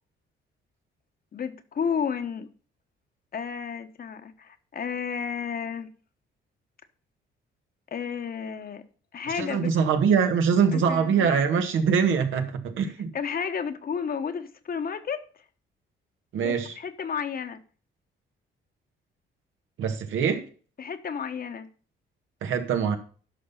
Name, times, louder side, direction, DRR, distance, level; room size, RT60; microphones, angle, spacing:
voice 1, 1.3-2.5 3.3-5.9 7.9-8.8 9.1-9.7 10.7-11.3 13.1-15.2 16.4-17.6 20.8-21.7, left 6 dB, 50° left, 1.2 m, -32 dB
voice 2, 9.3-13.1 16.3-16.8 19.8-20.5 22.4-23.0, right 6 dB, 80° right, 1.8 m, -23 dB
11.0 x 6.0 x 5.6 m
cardioid pair, 90°, 20 cm